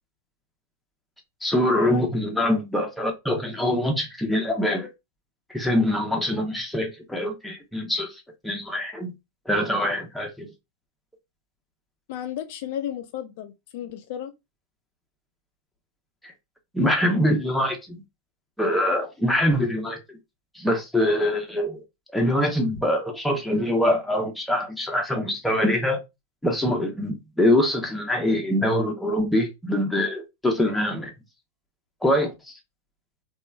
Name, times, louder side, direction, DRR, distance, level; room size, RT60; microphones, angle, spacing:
voice 1, 1.4-4.9 5.5-9.1 9.5-10.5 16.2-16.3 16.7-18.0 18.6-20.2 20.5-21.8 22.1-26.0 26.4-31.1 32.0-32.6, left 1 dB, 5° left, 0.7 m, -24 dB
voice 2, 12.1-14.3, left 10 dB, 55° left, 0.3 m, -33 dB
3.0 x 2.3 x 2.2 m
hypercardioid pair, 100°, 0 cm